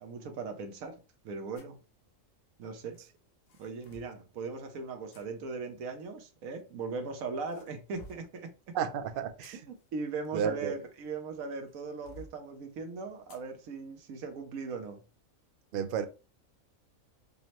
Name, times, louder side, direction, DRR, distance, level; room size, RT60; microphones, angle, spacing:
voice 1, 0.0-1.8 2.6-3.0 3.6-8.5 9.7-15.0, right 4 dB, 90° right, 1.2 m, -39 dB
sound 1, 1.5-1.8 2.9-4.2 5.1-5.2 6.4-7.0 7.4-8.4 9.1-11.2 11.7-12.4 13.3-13.5 13.9-14.0 14.6-14.8, left 1 dB, 85° left, 1.2 m, -54 dB
voice 2, 8.7-9.6 10.3-10.7 15.7-16.0, right 7 dB, 65° right, 0.5 m, -32 dB
5.3 x 2.1 x 2.9 m
omnidirectional pair, 1.4 m